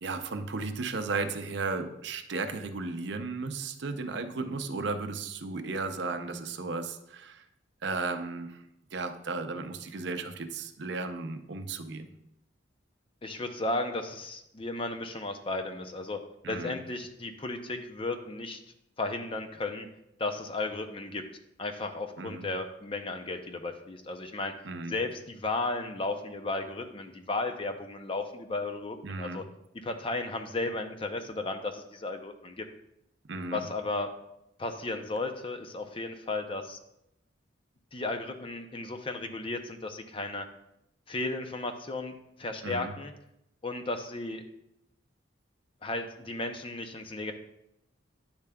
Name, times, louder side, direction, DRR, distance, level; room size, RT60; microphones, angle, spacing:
voice 1, 0.0-7.4 7.8-8.6 8.9-12.1 16.4-16.8 22.2-22.5 24.6-24.9 29.0-29.4 33.3-33.6 42.6-42.9, right 3 dB, 65° right, 7 dB, 0.6 m, -35 dB
voice 2, 13.2-16.2 16.5-18.6 19.0-19.9 20.2-21.2 21.6-24.5 24.9-29.4 29.7-32.6 33.5-34.1 34.6-36.8 37.9-40.4 41.1-42.1 42.4-43.1 43.6-44.4 45.8-47.3, left 2 dB, 30° left, 6 dB, 0.5 m, -34 dB
9.6 x 7.0 x 2.3 m, 0.81 s
head